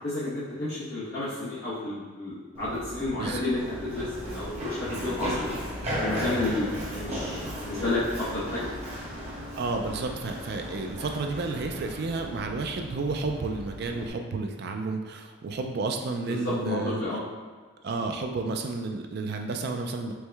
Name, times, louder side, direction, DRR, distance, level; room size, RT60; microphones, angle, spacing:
voice 1, 0.0-4.5 4.8-5.5 6.0-8.7 16.3-17.2, left 2 dB, 50° left, -12 dB, 0.8 m, -31 dB
Run, 2.5-14.1, equal, 30° right, 0.8 m, -36 dB
voice 2, 9.6-17.0 17.8-20.1, right 3 dB, 50° right, 4 dB, 0.3 m, -31 dB
4.5 x 2.1 x 3.3 m, 1.5 s
head